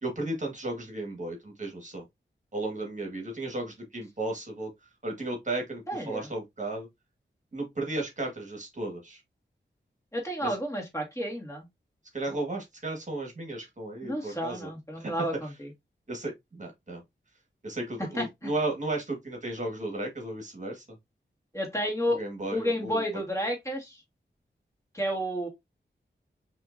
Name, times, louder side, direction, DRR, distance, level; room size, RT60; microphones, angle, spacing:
voice 1, 0.0-2.0 2.5-4.7 5.0-6.9 7.5-9.2 10.4-10.5 12.1-14.7 15.0-15.1 16.1-17.0 17.6-20.8 22.1-23.0, right 2 dB, 40° right, 1.6 m, -34 dB
voice 2, 5.9-6.3 10.1-11.6 14.0-15.7 18.2-18.5 21.5-22.2 22.5-24.0 24.9-25.5, equal, 15° left, 1.8 m, -31 dB
5.7 x 2.9 x 2.6 m
wide cardioid pair, 95°, 19 cm